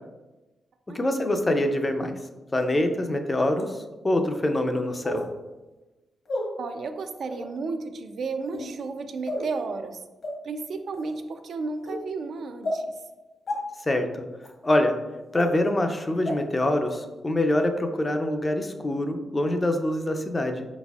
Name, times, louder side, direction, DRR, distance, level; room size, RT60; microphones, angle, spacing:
voice 1, 0.9-2.1 2.5-3.8 4.0-5.2 13.9-14.1 14.6-14.9 15.3-20.7, left 1 dB, 20° left, 6 dB, 0.4 m, -25 dB
sound 1, 2.5-2.6 3.5-3.6 5.0-5.3 6.3-6.4 7.2-7.5 8.4-8.7 9.3-9.5 10.2-10.3 10.9-11.1 11.9-12.0 12.6-12.8 13.5-13.6 14.4-14.5 15.3-15.4 16.3-16.4 16.9-17.0, left 1 dB, 60° left, 1.2 m, -31 dB
voice 2, 6.6-10.0 10.4-12.9, right 4 dB, 65° right, 7 dB, 0.4 m, -33 dB
5.0 x 4.0 x 2.3 m, 1.1 s
cardioid pair, 105°, 0 cm